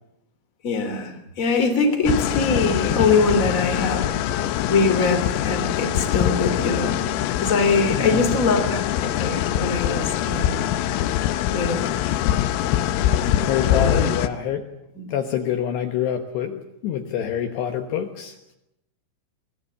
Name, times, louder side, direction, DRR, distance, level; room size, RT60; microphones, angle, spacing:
voice 1, 0.6-4.1 4.7-7.0 7.4-10.7 11.5-11.9 13.7-14.1 15.0-15.1, left 4 dB, 20° left, 5 dB, 2.6 m, -22 dB
sound 1, 2.1-14.3, left 11 dB, 90° left, 3.7 m, -23 dB
voice 2, 7.9-8.2 13.4-14.6 15.1-18.4, left 9 dB, 70° left, 6 dB, 3.0 m, -26 dB
23.5 x 18.0 x 8.5 m, 0.85 s
omnidirectional pair, 5.7 m